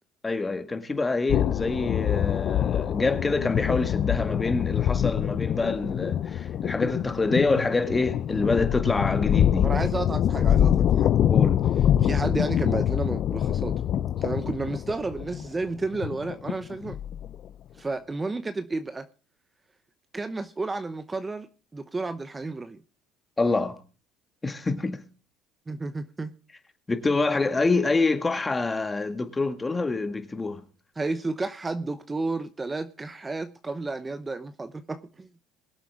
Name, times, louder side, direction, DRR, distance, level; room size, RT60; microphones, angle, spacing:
voice 1, 0.2-9.7 11.3-11.6 23.4-23.8 24.4-25.0 26.9-30.6, left 3 dB, 20° left, 1.8 m, -26 dB
sound 1, 1.3-17.5, left 10 dB, 55° left, 0.6 m, -25 dB
voice 2, 9.6-11.1 12.0-13.8 14.2-17.0 17.8-19.1 20.1-22.8 25.7-26.3 31.0-35.3, right 3 dB, 20° right, 0.8 m, -32 dB
23.0 x 7.6 x 3.7 m
supercardioid pair, 90°, 0 cm